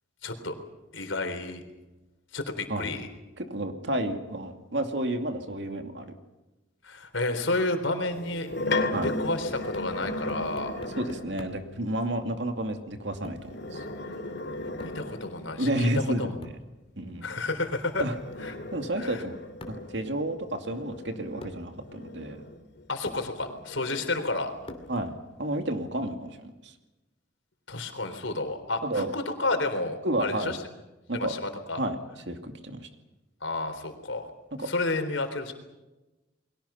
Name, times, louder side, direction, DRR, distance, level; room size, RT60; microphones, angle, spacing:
voice 1, 0.2-0.6 0.9-1.6 2.3-3.1 6.8-8.5 9.0-10.8 14.8-16.4 17.2-18.1 18.4-18.6 19.0-19.2 22.9-24.5 27.7-30.6 31.1-31.8 33.4-34.3 34.6-35.5, left 2 dB, 80° left, 6 dB, 3.8 m, -31 dB
voice 2, 3.4-6.1 8.9-9.1 11.0-13.8 15.6-16.5 17.0-17.2 18.0-18.1 18.7-19.3 19.7-22.4 24.9-26.7 28.8-29.1 30.0-30.6 31.1-31.3 31.8-32.0 32.3-32.9 34.6-34.7, right 1 dB, 65° right, 6 dB, 2.5 m, -31 dB
sound 1, 8.1-11.4 13.4-15.7 17.7-22.9 23.4-25.2, left 2 dB, 60° left, 2.8 m, -36 dB
sound 2, 9.5-11.7 13.2-13.6 14.8-15.1 16.4-16.7 18.0-18.3 19.6-19.9 20.9-21.0 21.4-21.7 22.5-22.6 23.1-23.3 24.7-25.0, left 1 dB, 30° left, 2.6 m, -45 dB
30.0 x 22.0 x 5.8 m, 1.1 s
head